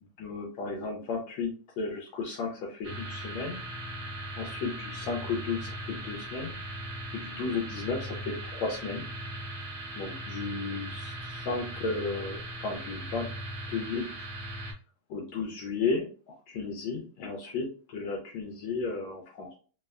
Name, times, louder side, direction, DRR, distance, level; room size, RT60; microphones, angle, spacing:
voice 1, 0.2-3.6 4.4-6.5 7.1-9.0 9.9-13.3 13.7-14.1 15.1-19.5, left 4 dB, 80° left, -1 dB, 1.3 m, -34 dB
sound 1, 2.8-14.7, right 1 dB, 75° right, 0.6 m, -39 dB
3.3 x 2.1 x 2.3 m, 0.39 s
omnidirectional pair, 2.2 m